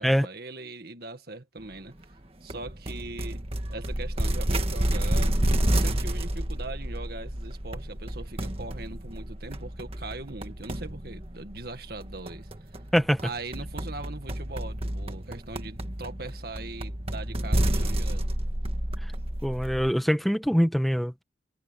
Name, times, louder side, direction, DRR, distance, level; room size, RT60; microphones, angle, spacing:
voice 1, 0.0-1.9 2.4-3.4 3.7-5.4 5.7-12.5 13.2-18.3, right 2 dB, 55° right, 1.9 m, -40 dB
sound 1, 2.5-19.9, right 1 dB, 30° right, 1.7 m, -30 dB
voice 2, 19.4-21.2, equal, ahead, 1.4 m, -24 dB
head